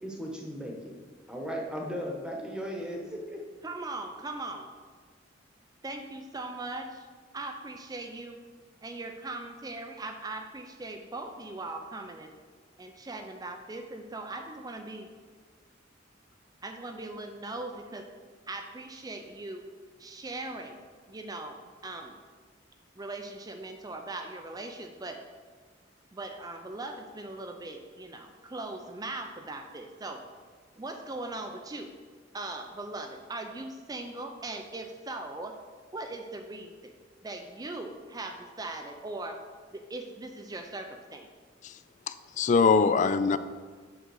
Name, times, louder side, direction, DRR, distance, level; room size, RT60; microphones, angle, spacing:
voice 1, 0.0-0.9 1.3-3.4, equal, 5° right, 0 dB, 1.1 m, -36 dB
voice 2, 3.6-4.7 5.8-7.1 7.3-8.4 8.8-12.3 12.8-15.1 16.6-18.0 18.5-19.6 20.0-20.8 21.1-22.2 23.0-25.2 26.1-30.2 30.8-31.9 32.3-35.6 35.9-36.9 37.2-39.4 39.7-41.3, right 2 dB, 20° right, 4 dB, 0.5 m, -39 dB
voice 3, 42.1-43.4, left 5 dB, 40° left, 13 dB, 0.3 m, -23 dB
7.9 x 3.8 x 6.3 m, 1.5 s
head